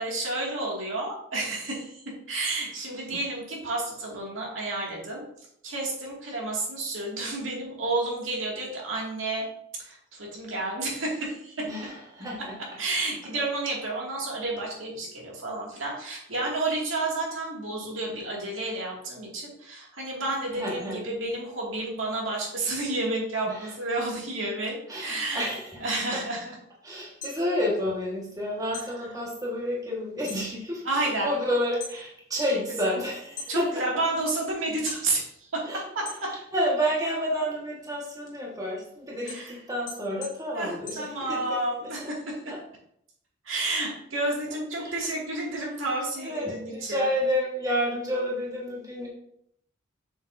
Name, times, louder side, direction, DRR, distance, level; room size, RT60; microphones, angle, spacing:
voice 1, 0.0-5.2 5.6-9.4 9.8-11.7 12.8-25.5 25.8-26.6 30.8-31.3 32.4-32.5 32.8-33.0 33.5-35.6 35.9-36.3 39.2-39.5 40.5-42.4 43.4-47.0, right 2 dB, 80° right, -2 dB, 2.3 m, -31 dB
voice 2, 11.6-12.4 20.5-21.1 23.5-23.7 24.9-25.8 26.8-33.7 35.6-35.8 36.3-41.7 42.0-42.1 42.5-42.6 44.8-45.1 46.2-49.1, equal, 20° right, -4 dB, 1.6 m, -30 dB
sound 1, 27.0-28.4 28.7-30.5 30.8-31.3 31.7-33.8 34.3-35.1 35.5-36.7 37.1-41.7, left 3 dB, 40° left, 1.6 m, -42 dB
7.3 x 7.0 x 2.7 m, 0.72 s
head